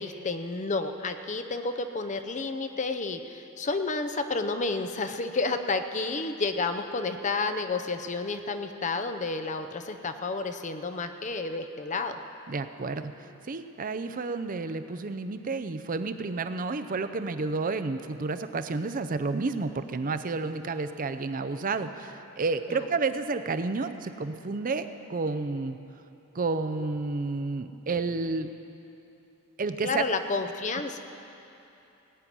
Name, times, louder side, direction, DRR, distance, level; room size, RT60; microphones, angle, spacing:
voice 1, 0.0-12.2 22.7-22.8 29.8-31.0, left 3 dB, 35° left, 8 dB, 0.6 m, -31 dB
voice 2, 12.5-13.1 13.5-25.8 26.3-28.5 29.6-30.1, right 3 dB, 40° right, 10 dB, 0.5 m, -30 dB
18.0 x 9.5 x 6.1 m, 2.9 s
head